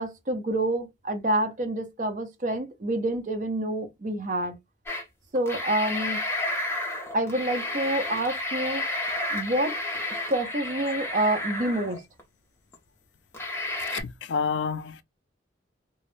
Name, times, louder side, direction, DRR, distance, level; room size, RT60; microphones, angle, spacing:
voice 1, 0.0-4.5 5.3-6.2 7.1-8.9 9.3-9.8 10.3-12.0, right 1 dB, 45° right, 0.6 m, -27 dB
sound 1, 4.9-5.0 5.3-12.2 12.7-12.8 13.3-14.0, left 2 dB, 15° left, 0.5 m, -31 dB
voice 2, 13.9-15.0, left 5 dB, 70° left, 0.3 m, -29 dB
2.2 x 2.0 x 2.9 m
head